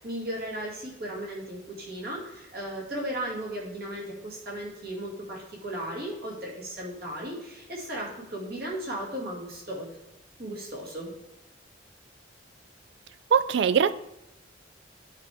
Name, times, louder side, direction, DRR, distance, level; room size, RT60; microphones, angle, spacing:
voice 1, 0.0-9.9 10.4-11.1, right 1 dB, 55° right, -3 dB, 2.3 m, -36 dB
voice 2, 13.3-13.9, right 7 dB, 70° right, 15 dB, 0.4 m, -21 dB
10.0 x 5.0 x 3.5 m, 0.91 s
head